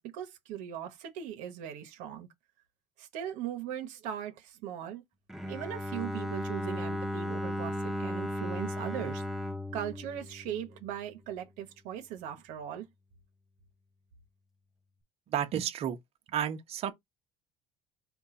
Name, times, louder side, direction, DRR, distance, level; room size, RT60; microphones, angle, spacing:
voice 1, 0.0-2.3 3.0-5.0 5.5-9.2 9.7-12.9, right 10 dB, 75° right, 1.0 m, -39 dB
Bowed string instrument, 5.3-11.2, left 1 dB, ahead, 0.6 m, -36 dB
voice 2, 15.3-16.0 16.3-16.9, right 10 dB, 50° right, 0.9 m, -31 dB
4.4 x 2.3 x 4.1 m
cardioid pair, 125°, 13 cm